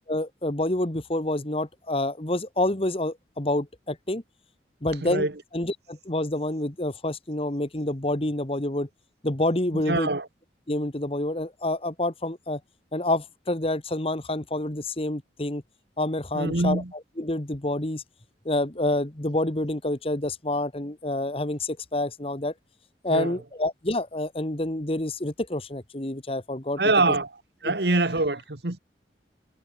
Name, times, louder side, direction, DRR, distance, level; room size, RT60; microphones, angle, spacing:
voice 1, 0.1-4.2 4.8-5.3 5.5-8.9 9.2-10.1 10.7-12.6 12.9-15.6 16.0-16.8 17.2-18.0 18.4-22.5 23.0-26.8 27.6-27.7, left 1 dB, 30° left, 1.7 m, -28 dB
voice 2, 5.0-5.3 9.7-10.3 16.3-16.9 23.1-23.4 26.8-27.3 27.6-28.8, right 2 dB, 60° right, 1.8 m, -24 dB
head